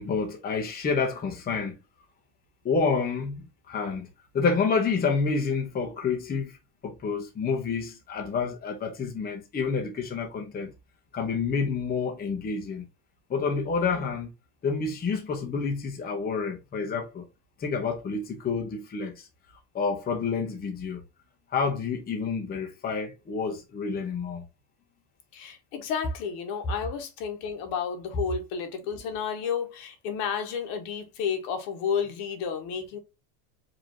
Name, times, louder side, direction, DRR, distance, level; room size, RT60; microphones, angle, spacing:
voice 1, 0.0-1.8 2.6-6.6 6.8-10.7 11.1-12.8 13.3-14.3 14.6-17.2 17.6-19.3 19.7-21.0 21.5-24.4, left 5 dB, 20° left, 1.0 m, -29 dB
voice 2, 25.3-33.0, left 7 dB, 60° left, 1.6 m, -31 dB
5.2 x 3.1 x 2.9 m
supercardioid pair, 140°, 46 cm